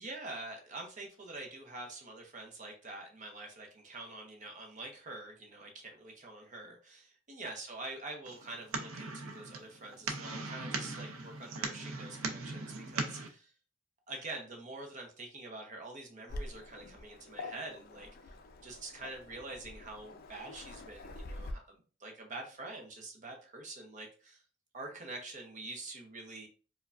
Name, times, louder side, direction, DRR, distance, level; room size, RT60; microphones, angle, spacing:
voice 1, 0.0-13.5 14.1-18.3 18.6-24.4 24.7-26.5, right 2 dB, 40° right, 2 dB, 0.7 m, -46 dB
sound 1, 8.3-13.3, right 3 dB, 80° right, 0.6 m, -39 dB
Waves surf, 16.3-21.5, left 2 dB, 45° left, 0.4 m, -46 dB
4.7 x 2.2 x 2.4 m, 0.37 s
head